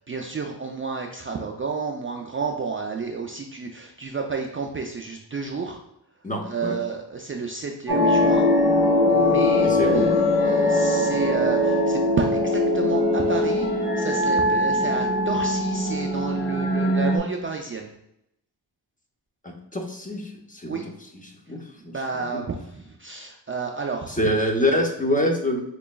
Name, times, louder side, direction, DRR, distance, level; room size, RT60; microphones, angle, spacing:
voice 1, 0.1-5.8 6.4-8.5 9.1-13.7 14.0-17.9 20.7-20.8 21.8-24.2, right 5 dB, 30° right, 1 dB, 0.4 m, -31 dB
voice 2, 6.2-6.8 9.6-10.1 19.4-20.8 21.1-22.4 24.0-25.6, left 1 dB, 20° left, 2 dB, 0.6 m, -26 dB
sound 1, 7.9-17.2, left 1 dB, 65° left, 1.1 m, -21 dB
4.6 x 3.0 x 2.3 m, 0.83 s
wide cardioid pair, 80°, 42 cm